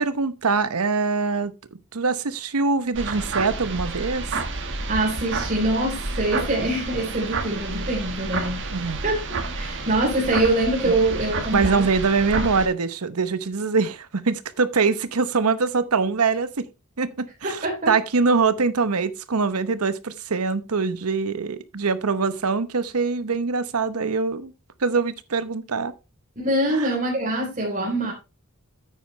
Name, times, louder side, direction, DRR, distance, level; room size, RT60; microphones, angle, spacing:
voice 1, 0.0-1.5 1.9-4.3 8.7-9.0 11.5-16.7 17.0-24.5 24.8-25.9 26.7-26.9, right 4 dB, 90° right, 0.9 m, -23 dB
sound 1, 2.9-12.7, right 3 dB, 60° right, 1.6 m, -30 dB
voice 2, 4.9-8.6 9.0-9.2 9.5-11.9 12.2-12.5 17.4-17.9 26.4-28.1, right 1 dB, 35° right, 3.5 m, -24 dB
9.7 x 8.9 x 3.2 m
head